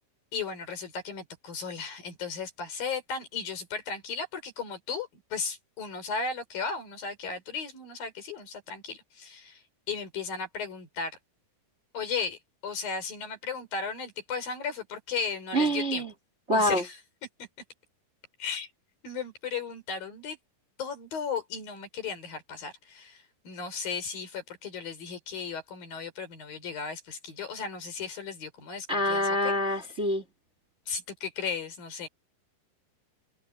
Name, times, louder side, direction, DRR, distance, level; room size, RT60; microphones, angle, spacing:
voice 1, 0.3-9.6 9.9-11.2 11.9-16.0 16.5-17.0 18.4-18.7 19.0-20.4 20.8-29.8 30.9-32.1, left 5 dB, 60° left, 6.3 m, -35 dB
voice 2, 15.5-16.1 16.5-16.8 28.9-30.2, equal, 15° right, 3.1 m, -26 dB
omnidirectional pair, 4.7 m